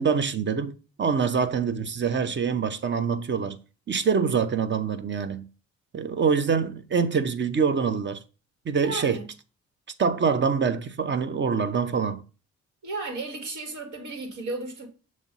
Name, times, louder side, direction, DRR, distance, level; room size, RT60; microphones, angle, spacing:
voice 1, 0.0-3.6 3.9-5.5 5.9-8.2 8.7-9.2 10.0-12.2, right 6 dB, 40° right, 0.8 m, -25 dB
voice 2, 8.8-9.3 12.8-14.9, right 2 dB, 75° right, 2.3 m, -34 dB
7.0 x 3.2 x 5.4 m
cardioid pair, 90°, 30 cm